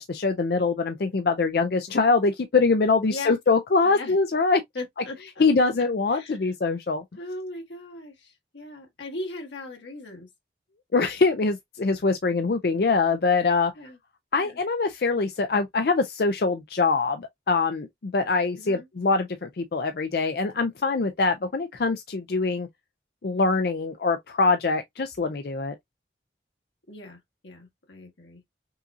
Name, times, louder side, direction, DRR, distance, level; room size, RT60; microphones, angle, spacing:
voice 1, 0.0-4.6 5.4-7.0 10.9-13.7 14.3-22.7 23.2-25.7, left 4 dB, 55° left, 0.4 m, -23 dB
voice 2, 3.8-4.2 4.7-5.4 6.1-6.4 7.2-10.3 13.7-14.0 14.4-14.6 18.6-18.9 26.9-28.4, left 2 dB, 90° left, 1.5 m, -38 dB
5.5 x 2.7 x 2.4 m
head